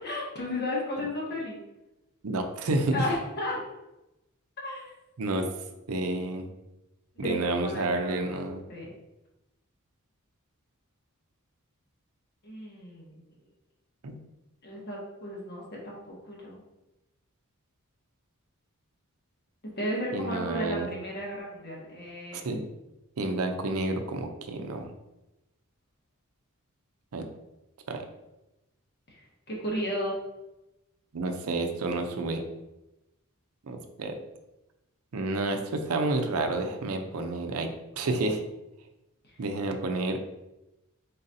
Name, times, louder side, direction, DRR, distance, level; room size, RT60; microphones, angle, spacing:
voice 1, 0.0-1.6 2.9-3.7 4.6-4.9 5.3-5.4 7.2-8.3 8.7-8.9 12.4-13.2 14.6-16.6 19.6-22.4 29.1-30.2, left 1 dB, 50° left, -3 dB, 1.3 m, -34 dB
voice 2, 2.2-3.0 5.2-5.4 5.9-6.5 7.2-8.6 14.0-14.2 20.1-20.9 22.3-22.6 23.2-24.9 27.1-27.2 27.9-28.0 31.1-32.4 33.7-34.2 35.1-38.4 39.4-40.2, right 2 dB, 80° right, 5 dB, 0.6 m, -30 dB
4.0 x 3.9 x 2.7 m, 0.96 s
head